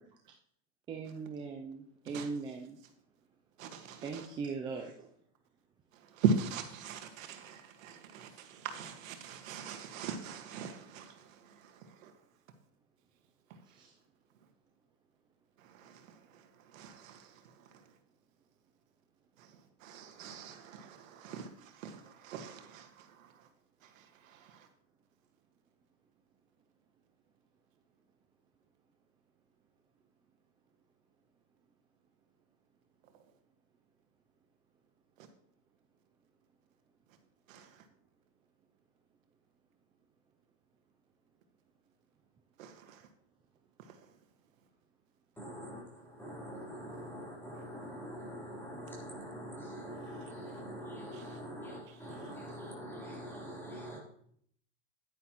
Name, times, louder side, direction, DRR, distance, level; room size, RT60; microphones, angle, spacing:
voice 1, 0.9-2.8 4.0-5.1 13.7-14.0, right 4 dB, 15° right, 0.3 m, -40 dB
voice 2, 3.6-4.3 5.9-12.1 13.5-13.8 15.6-18.0 19.4-23.5 23.8-24.7 33.1-33.2 35.2-35.3 37.5-37.9 42.6-43.1 43.8-44.2 51.1-51.4 51.9-52.2, right 5 dB, 90° right, 1.6 m, -41 dB
voice 3, 45.4-54.0, equal, 5° left, 3.4 m, -44 dB
10.0 x 9.4 x 3.0 m
supercardioid pair, 150°, 39 cm